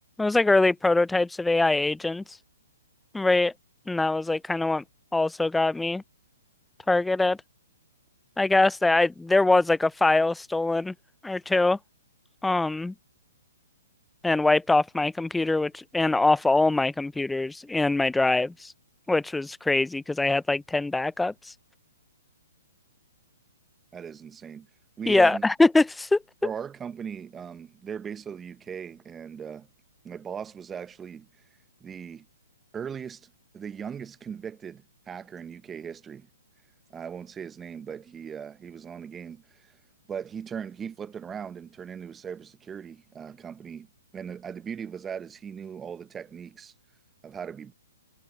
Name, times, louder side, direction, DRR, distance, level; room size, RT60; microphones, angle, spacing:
voice 1, 0.2-2.2 3.1-3.5 3.9-4.8 5.1-6.0 6.9-7.4 8.4-10.9 11.2-11.8 12.4-12.9 14.2-18.7 19.1-21.5 25.1-26.2, left 2 dB, 5° left, 0.5 m, -23 dB
voice 2, 23.9-24.7 25.0-25.4 26.4-29.7 30.0-31.3 31.8-32.3 32.7-36.3 36.9-39.8 40.1-43.9 44.1-46.7 47.2-47.7, right 7 dB, 15° right, 0.9 m, -38 dB
figure-of-eight pair, 125°, 0 cm